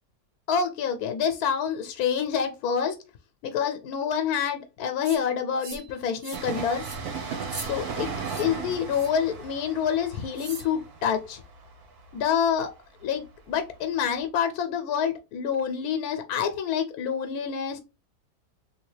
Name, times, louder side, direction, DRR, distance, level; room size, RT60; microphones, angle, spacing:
voice 1, 0.5-3.0 3.4-6.8 7.6-11.4 12.1-12.7 13.0-17.8, left 7 dB, 90° left, 7 dB, 1.1 m, -27 dB
sound 1, 5.0-5.2 5.6-5.9 6.2-6.5 6.8-7.0 7.4-7.7 8.2-8.5 8.9-9.2 10.4-10.7, right 3 dB, 40° right, 0.6 m, -40 dB
Train, 6.3-13.8 14.0-14.1, right 5 dB, 85° right, 1.4 m, -37 dB
3.4 x 2.8 x 3.2 m, 0.27 s
omnidirectional pair, 1.6 m